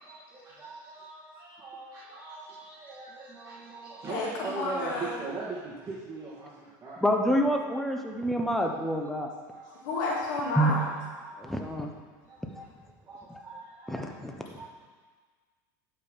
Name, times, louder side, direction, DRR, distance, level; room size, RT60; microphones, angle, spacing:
voice 1, 0.6-7.0 7.9-8.5 9.5-10.0 10.7-10.8 11.2-11.6 12.3-12.4 13.1-14.1 14.5-14.6, right 3 dB, 25° right, -7 dB, 2.3 m, -41 dB
voice 2, 4.1-5.3 9.8-10.8, left 3 dB, 75° left, -4 dB, 2.5 m, -31 dB
voice 3, 7.0-9.3 10.6-10.7 11.4-11.9 12.6-12.7 13.3-13.4 13.9-14.4, equal, 5° left, 2 dB, 1.0 m, -27 dB
11.5 x 5.3 x 5.7 m, 1.5 s
supercardioid pair, 115°, 10 cm